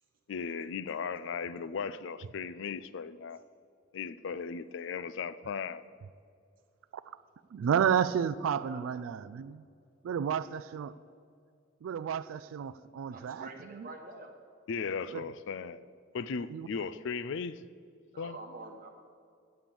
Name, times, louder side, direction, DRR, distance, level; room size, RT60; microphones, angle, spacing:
voice 1, 0.3-3.4 3.9-5.8 14.7-15.8 16.1-17.6 18.2-18.4, left 5 dB, 65° left, 0.4 m, -37 dB
voice 2, 7.5-9.6 10.0-10.9 11.8-13.9 15.1-15.2 16.5-16.7, right 8 dB, 90° right, 0.3 m, -31 dB
voice 3, 8.5-8.8 13.1-14.3 18.1-18.9, right 2 dB, 45° right, 1.5 m, -46 dB
9.6 x 7.4 x 6.9 m
head